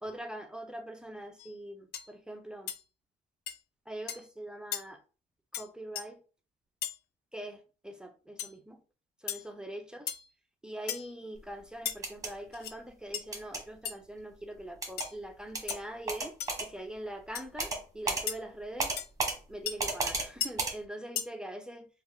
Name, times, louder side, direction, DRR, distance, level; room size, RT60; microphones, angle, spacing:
voice 1, 0.0-2.7 3.9-5.0 5.5-6.2 7.3-8.8 9.2-10.1 10.6-19.0 19.5-21.9, right 1 dB, 5° right, 0.4 m, -43 dB
sound 1, 1.4-1.5 1.9-2.1 2.7-2.8 3.5-3.6 4.1-4.3 4.7-4.8 5.5-5.7 6.0-6.1 6.8-7.0 8.4-8.5 9.3-9.4 10.1-10.3 10.9-11.1 11.9-12.0 12.5-12.8 13.1-13.2 13.8-13.9 15.0-15.1 15.7-15.8 16.4-16.6 17.3-17.4 18.3-18.4 19.0-19.1 19.7-19.8 20.4-20.5 21.2-21.3, left 10 dB, 75° left, 0.5 m, -36 dB
sound 2, 11.9-12.3 13.3-13.6 14.8-15.1 15.5-15.8 16.1-16.7 17.6-17.8 18.1-18.2 18.8-19.4 19.8-20.3 20.6-20.7, right 3 dB, 20° right, 1.0 m, -32 dB
3.4 x 2.3 x 3.3 m
cardioid pair, 110°, 17 cm